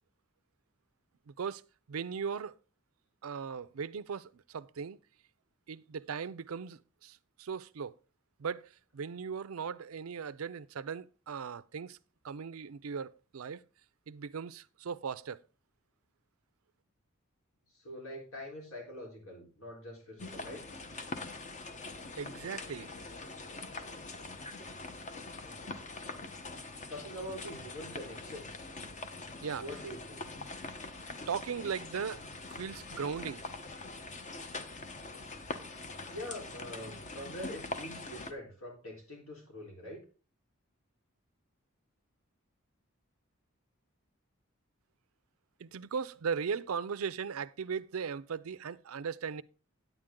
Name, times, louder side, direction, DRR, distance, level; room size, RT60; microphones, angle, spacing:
voice 1, 1.3-1.6 1.9-2.5 3.2-5.0 5.7-7.9 8.4-12.0 12.2-13.6 14.1-15.4 22.1-22.9 29.4-29.6 31.3-32.2 32.5-33.4 45.6-49.4, right 6 dB, 90° right, 0.5 m, -38 dB
voice 2, 17.7-20.7 25.4-25.7 26.9-28.7 29.6-30.3 36.1-40.0, left 1 dB, 75° left, 4.0 m, -44 dB
sound 1, 20.2-38.3, left 3 dB, 35° left, 0.9 m, -43 dB
9.4 x 9.0 x 3.7 m
head